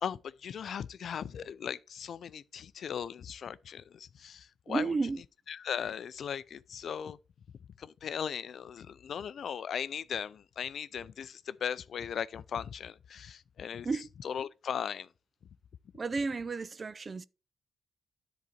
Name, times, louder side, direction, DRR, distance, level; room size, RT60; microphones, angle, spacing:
voice 1, 0.0-5.0 5.5-7.2 7.8-13.9 14.2-15.1, left 8 dB, 65° left, 0.4 m, -38 dB
voice 2, 4.7-5.2 13.8-14.1 15.9-17.2, right 4 dB, 35° right, 0.4 m, -32 dB
10.5 x 4.0 x 5.1 m
cardioid pair, 110°, 0 cm